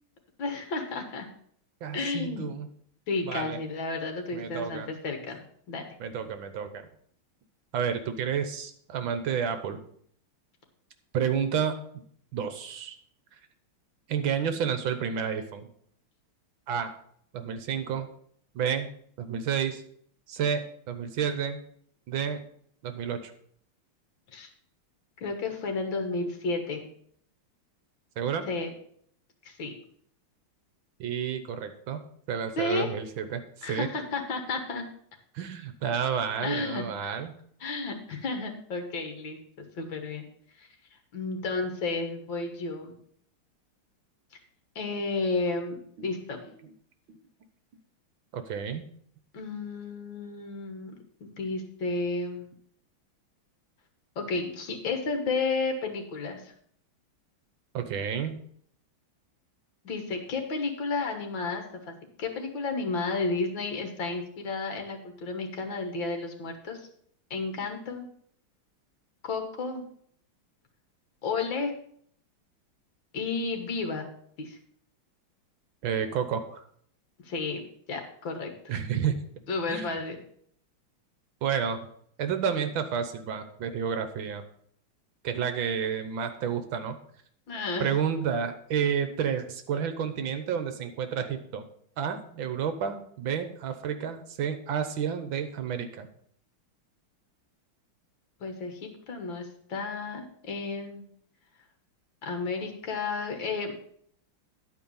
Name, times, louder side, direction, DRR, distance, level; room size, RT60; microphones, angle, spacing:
voice 1, 0.4-1.3 1.9-2.5 3.1-5.8 24.3-24.5 25.2-26.9 28.5-28.7 29.5-29.7 32.6-32.9 33.6-34.9 36.4-37.1 37.6-39.4 39.8-40.3 40.6-40.7 41.1-43.0 44.8-46.4 49.3-50.9 51.2-52.5 54.2-56.5 59.8-66.8 67.3-68.1 69.2-69.8 71.2-71.7 73.1-74.1 74.4-74.6 77.3-77.6 77.9-78.5 79.5-80.2 87.5-87.9 98.4-101.0 102.2-103.7, left 3 dB, 65° left, 4 dB, 2.2 m, -32 dB
voice 2, 1.8-2.7 3.2-3.6 4.3-4.9 6.0-6.9 7.7-9.8 11.1-11.8 12.3-13.0 14.1-15.7 16.7-16.9 17.3-18.1 18.6-18.9 19.2-19.8 20.3-21.6 22.1-22.4 22.8-23.3 28.2-28.5 31.0-33.9 35.4-37.3 46.0-46.1 46.6-46.7 47.1-47.2 48.3-48.8 57.7-58.4 75.8-76.6 78.7-79.2 79.7-80.0 81.4-81.8 82.2-84.4 85.2-87.0 87.8-91.6 92.0-96.1, right 7 dB, 70° right, 9 dB, 1.7 m, -30 dB
10.5 x 4.7 x 7.0 m, 0.63 s
omnidirectional pair, 2.3 m